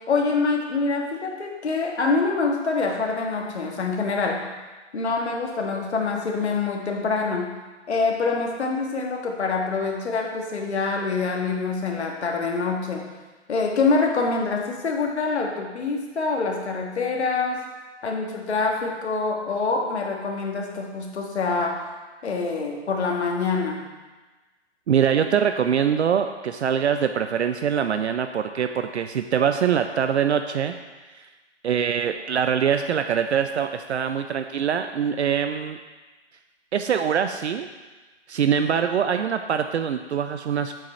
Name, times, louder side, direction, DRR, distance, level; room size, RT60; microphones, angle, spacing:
voice 1, 0.1-4.4 4.9-7.5 7.9-13.1 13.5-17.6 18.0-21.8 22.2-23.8, left 4 dB, 65° left, 1 dB, 1.5 m, -25 dB
voice 2, 24.9-30.7 31.6-35.8 36.7-37.7 38.3-40.8, right 8 dB, 70° right, 8 dB, 0.5 m, -23 dB
7.4 x 5.3 x 4.2 m, 1.3 s
hypercardioid pair, 160°, 35 cm